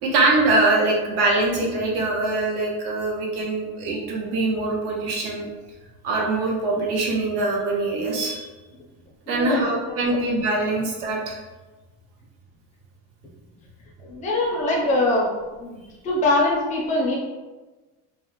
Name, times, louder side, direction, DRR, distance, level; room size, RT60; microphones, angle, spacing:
voice 1, 0.0-5.5 6.0-8.5 9.3-11.3, right 2 dB, 70° right, -1 dB, 0.7 m, -23 dB
voice 2, 9.3-9.6 10.1-10.2 14.0-15.3 15.6-17.2, left 2 dB, 20° left, -3 dB, 0.4 m, -23 dB
2.4 x 2.0 x 3.0 m, 1.2 s
cardioid pair, 175°, 35 cm